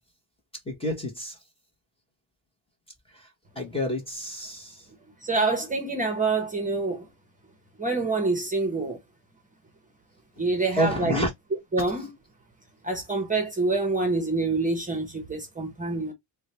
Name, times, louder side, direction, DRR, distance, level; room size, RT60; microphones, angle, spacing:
voice 1, 0.7-1.4 3.1-3.3 3.6-4.9 10.7-11.3, equal, 10° left, 0.9 m, -29 dB
voice 2, 5.2-7.1 7.8-9.0 10.4-11.1 11.7-12.1 12.8-16.1, right 3 dB, 15° right, 0.8 m, -26 dB
3.9 x 2.2 x 2.9 m
cardioid pair, 150°, 46 cm